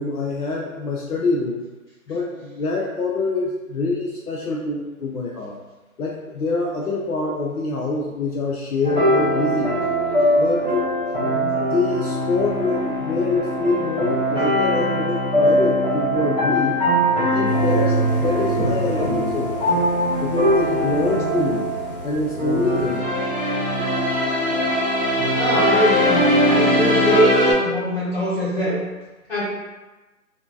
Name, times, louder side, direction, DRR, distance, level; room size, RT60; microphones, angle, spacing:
voice 1, 0.0-1.6 2.1-5.6 6.0-9.7 10.4-10.9 11.7-16.8 17.1-19.6 20.2-21.7 22.0-23.1 27.1-27.2, left 3 dB, 85° left, -2 dB, 0.6 m, -25 dB
sound 1, 8.8-27.5, equal, 30° left, 1.2 m, -21 dB
voice 2, 11.2-11.6 21.0-21.3 25.4-28.8 29.3-29.4, equal, 45° left, -9 dB, 1.5 m, -23 dB
sound 2, 17.4-23.0, right 1 dB, 40° right, 0.8 m, -35 dB
3.6 x 2.7 x 2.3 m, 1.2 s
hypercardioid pair, 175°, 43 cm